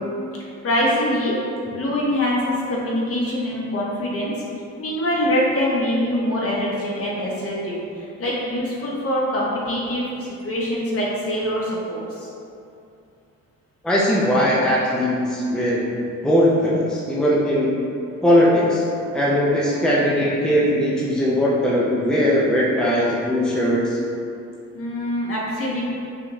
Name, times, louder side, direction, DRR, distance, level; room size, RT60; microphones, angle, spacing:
voice 1, 0.6-1.4 1.7-4.3 4.8-12.3 24.7-25.8, equal, 50° left, -5 dB, 1.2 m, -24 dB
voice 2, 13.8-16.0 16.2-17.7 18.2-18.8 19.1-24.0, equal, 5° left, -6 dB, 0.6 m, -19 dB
5.7 x 2.5 x 3.1 m, 2.6 s
cardioid pair, 90°, 30 cm